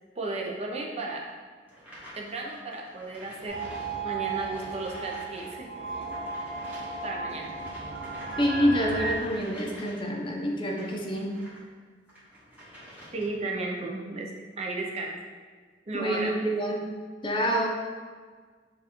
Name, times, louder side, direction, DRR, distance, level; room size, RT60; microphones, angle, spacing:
voice 1, 0.1-1.3 2.1-3.6 4.0-5.7 5.9-6.0 7.0-7.5 13.1-14.3 14.6-15.2 15.9-16.3, right 2 dB, 35° right, -1 dB, 0.5 m, -34 dB
sound 1, 1.7-5.5 5.7-11.6 12.0-13.5, equal, 10° right, 1.1 m, -49 dB
sound 2, 3.5-9.1, right 4 dB, 75° right, 0.7 m, -35 dB
voice 2, 8.4-11.3 15.9-16.9 17.2-17.7, equal, 25° left, 0 dB, 0.5 m, -27 dB
7.0 x 2.4 x 2.9 m, 1.5 s
head